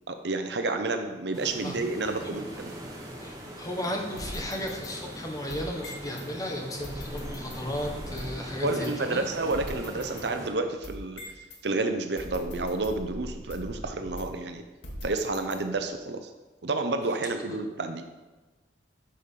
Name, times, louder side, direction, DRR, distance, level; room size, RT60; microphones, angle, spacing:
voice 1, 0.1-2.7 8.6-11.2 11.6-14.6 15.0-16.3 16.6-18.0, right 3 dB, 70° right, 7 dB, 0.7 m, -30 dB
sound 1, 1.3-10.5, equal, 20° right, 1.7 m, -41 dB
voice 2, 3.2-9.2, left 1 dB, 20° left, 1 dB, 1.5 m, -35 dB
sound 2, 4.2-6.3 6.8-8.4 8.8-8.9 9.5-11.6 12.2-14.5 14.8-15.9, equal, 90° left, 2.3 m, -41 dB
10.0 x 5.3 x 6.7 m, 1.2 s
head